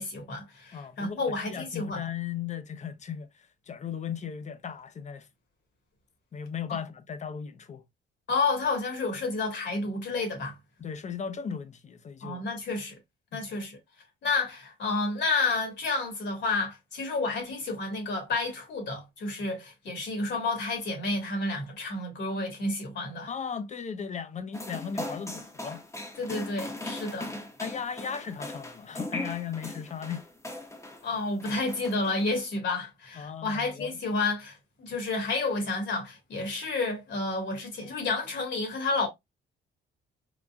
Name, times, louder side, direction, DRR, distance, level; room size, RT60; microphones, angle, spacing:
voice 1, 0.0-2.0 6.7-6.8 8.3-10.5 12.2-13.0 13.3-13.8 14.2-23.3 26.2-27.3 31.0-39.1, left 3 dB, 65° left, 1.6 m, -30 dB
voice 2, 0.7-5.3 6.3-7.8 10.8-12.5 13.3-13.5 23.3-25.8 27.6-30.2 33.1-34.0, left 7 dB, 35° left, 0.6 m, -37 dB
sound 1, 24.5-31.1 31.4-32.4, left 1 dB, 15° left, 0.9 m, -39 dB
3.9 x 2.2 x 2.3 m
cardioid pair, 90°, 20 cm